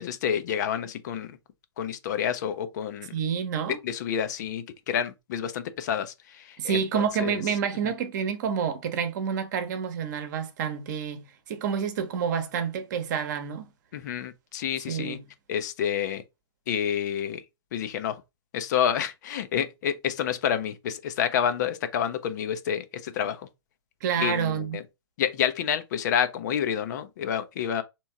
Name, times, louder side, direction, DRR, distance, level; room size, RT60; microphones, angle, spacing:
voice 1, 0.0-1.3 1.8-3.1 3.8-7.4 7.8-7.9 13.9-15.2 15.5-16.2 16.7-17.4 17.7-18.2 18.5-23.5 24.2-24.8 25.2-27.8, left 9 dB, 40° left, 0.6 m, -29 dB
voice 2, 3.1-3.8 6.6-13.7 14.9-15.2 24.0-24.8, right 7 dB, 45° right, 1.0 m, -28 dB
3.5 x 3.0 x 4.4 m
figure-of-eight pair, 120°, 14 cm